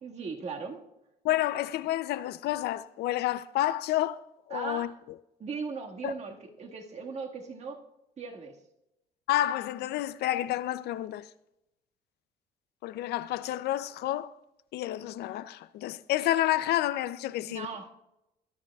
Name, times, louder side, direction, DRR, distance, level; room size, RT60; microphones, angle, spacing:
voice 1, 0.0-0.8 4.5-5.0 5.4-7.8 8.2-8.6 17.3-17.9, right 5 dB, 40° right, 1.8 m, -38 dB
voice 2, 1.2-4.2 4.5-4.9 6.0-6.1 9.3-11.3 12.8-14.3 14.7-17.7, left 14 dB, 75° left, 0.5 m, -29 dB
21.0 x 11.0 x 2.4 m
cardioid pair, 110°, 17 cm